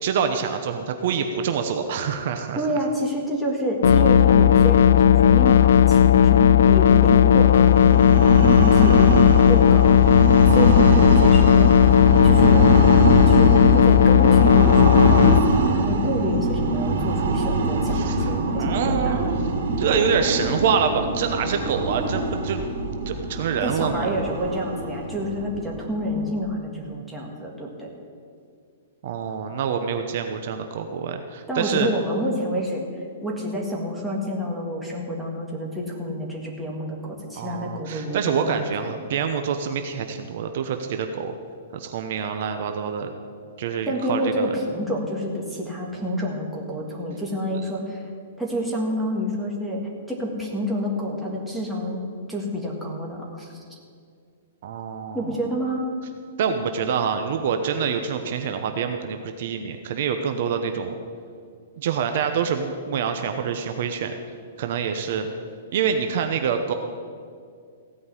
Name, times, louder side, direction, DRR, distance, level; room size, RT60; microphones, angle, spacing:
voice 1, 0.0-2.6 17.9-18.3 18.6-19.4 19.8-22.6 23.1-24.1 29.0-31.9 37.4-41.3 41.7-43.1 43.6-44.5 54.6-55.3 56.4-60.9 61.8-64.1 64.6-65.3 65.7-66.7, right 6 dB, 50° right, 6 dB, 0.9 m, -26 dB
voice 2, 2.6-11.7 12.2-12.7 13.3-19.2 23.6-27.9 31.5-32.8 33.2-39.0 43.9-48.1 48.4-52.0 52.3-53.6 55.1-55.8, equal, 5° right, -3 dB, 1.9 m, -28 dB
sound 1, 3.8-15.4, left 9 dB, 75° left, 0.4 m, -15 dB
sound 2, 7.6-26.4, right 2 dB, 80° right, 2.8 m, -23 dB
16.0 x 5.4 x 9.7 m, 2.2 s
hypercardioid pair, 165°, 0 cm